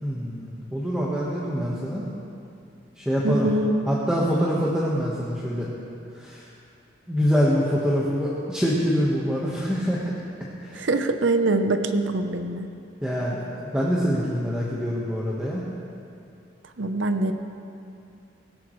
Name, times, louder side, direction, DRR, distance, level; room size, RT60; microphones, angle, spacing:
voice 1, 0.0-2.0 3.0-3.5 3.9-5.7 6.2-6.5 7.1-10.0 10.6-10.8 13.0-15.6, equal, 5° right, -6 dB, 1.3 m, -25 dB
voice 2, 3.2-3.8 10.7-12.7 16.8-17.3, right 2 dB, 80° right, 7 dB, 0.8 m, -23 dB
17.0 x 16.5 x 3.2 m, 2.6 s
head